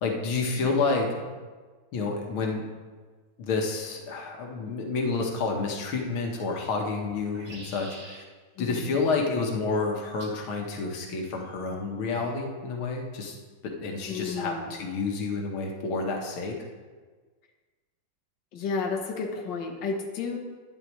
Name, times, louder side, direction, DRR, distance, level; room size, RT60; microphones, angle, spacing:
voice 1, 0.0-1.3 1.9-2.7 3.4-8.2 8.6-13.4 13.6-16.6, left 4 dB, 90° left, 1 dB, 2.0 m, -29 dB
sound 1, 6.1-6.6 7.1-8.2 10.2-10.4 11.4-11.8, right 2 dB, 25° right, 1.1 m, -47 dB
voice 2, 8.6-9.0 14.1-14.7 18.5-20.4, left 4 dB, 65° left, 1 dB, 1.7 m, -32 dB
11.5 x 9.6 x 3.1 m, 1.4 s
omnidirectional pair, 2.2 m